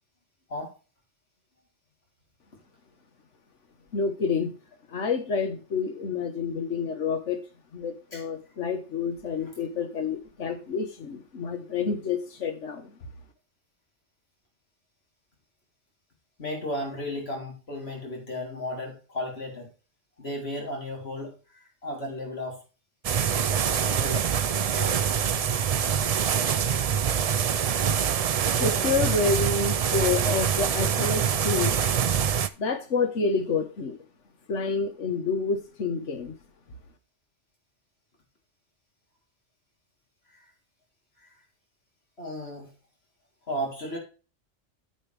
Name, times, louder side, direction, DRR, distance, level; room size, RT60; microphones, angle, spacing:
voice 1, 3.9-4.6 4.9-7.4 7.7-13.0 28.6-31.8 32.6-34.0 34.5-36.3, left 4 dB, 75° left, 8 dB, 1.6 m, -28 dB
voice 2, 16.4-19.7 20.2-22.6 23.9-24.3 24.7-25.0 26.2-26.4 40.3-40.5 42.2-42.7 43.5-44.0, left 1 dB, 60° left, -1 dB, 3.6 m, -34 dB
sound 1, 23.0-32.5, right 7 dB, 65° right, 0.3 m, -25 dB
10.0 x 7.7 x 3.4 m, 0.34 s
omnidirectional pair, 1.2 m